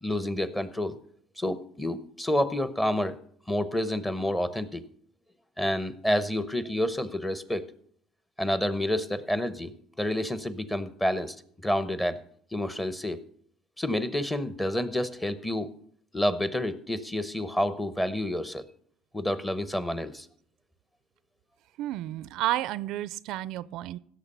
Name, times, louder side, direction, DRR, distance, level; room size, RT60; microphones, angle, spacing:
voice 1, 0.0-1.0 1.4-3.2 3.5-4.8 5.6-7.7 8.4-9.7 10.0-11.3 11.6-12.2 12.5-13.2 13.8-15.7 16.1-18.6 19.1-20.3, left 1 dB, 10° left, 13 dB, 0.8 m, -29 dB
voice 2, 21.8-24.0, right 14 dB, 70° right, 18 dB, 0.4 m, -31 dB
16.0 x 6.7 x 5.6 m, 0.62 s
cardioid pair, 120°, 0 cm